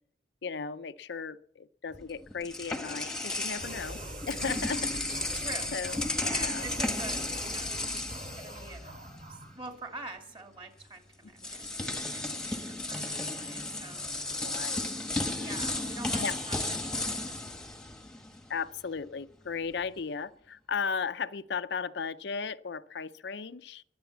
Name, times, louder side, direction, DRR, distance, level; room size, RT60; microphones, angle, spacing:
voice 1, 0.4-4.0 4.3-4.9 5.7-6.6 14.4-15.0 15.3-15.5 16.2-16.4 18.5-23.8, left 5 dB, 65° left, 11 dB, 0.5 m, -36 dB
sound 1, 1.9-9.2 9.5-9.7 10.8-10.9 11.4-18.5, left 2 dB, 5° left, 1.1 m, -34 dB
sound 2, 3.5-9.6, right 1 dB, 50° right, 6.6 m, -43 dB
voice 2, 5.3-5.7 6.2-7.9 8.3-8.9 9.3-14.1 15.4-17.2, right 3 dB, 30° right, 4 dB, 2.5 m, -45 dB
22.5 x 8.1 x 7.2 m, 0.68 s
head